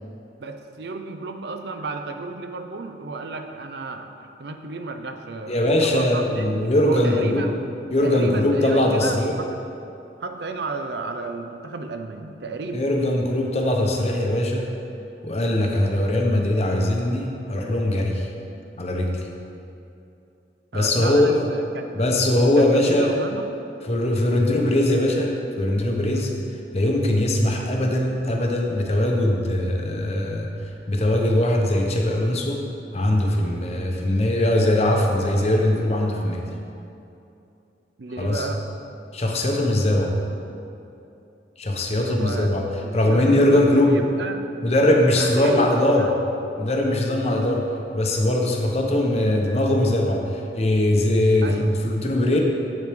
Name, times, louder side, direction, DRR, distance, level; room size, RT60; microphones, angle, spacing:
voice 1, 0.4-4.1 4.4-7.6 8.0-9.6 10.2-12.9 20.7-22.2 22.6-23.5 26.1-26.3 38.0-38.6 42.0-44.4 45.2-46.1 51.4-51.7, right 3 dB, 70° right, 6 dB, 0.5 m, -33 dB
voice 2, 5.5-7.5 7.9-9.3 12.7-14.7 15.2-18.3 18.8-19.2 20.7-21.5 21.9-23.2 23.9-26.3 26.7-30.5 30.9-32.6 32.9-36.5 38.2-38.5 39.1-40.1 41.6-42.7 42.9-44.0 44.6-46.1 46.6-47.7 47.9-52.4, left 1 dB, 35° left, 1 dB, 0.8 m, -21 dB
7.8 x 7.5 x 3.5 m, 2.7 s
head